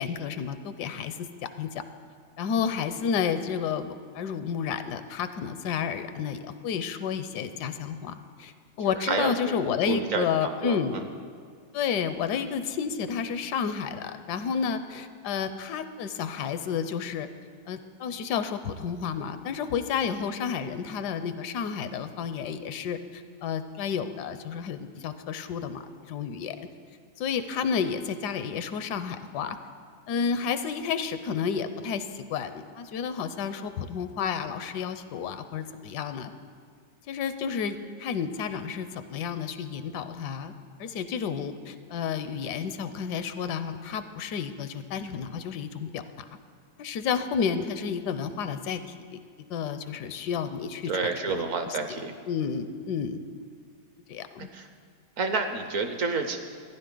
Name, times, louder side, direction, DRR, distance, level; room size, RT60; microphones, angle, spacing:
voice 1, 0.0-1.8 2.4-8.5 8.8-11.0 11.7-17.3 17.7-26.7 27.2-29.6 30.1-36.3 37.1-40.5 40.8-46.3 46.8-48.8 49.1-49.2 49.5-51.8 52.3-53.2 54.1-54.5, left 7 dB, 85° left, 11 dB, 1.2 m, -31 dB
voice 2, 9.0-9.6 9.9-11.1 50.9-52.1 54.5-54.7 55.2-56.4, right 4 dB, 60° right, 7 dB, 1.0 m, -29 dB
14.5 x 10.0 x 3.8 m, 2.2 s
omnidirectional pair, 1.8 m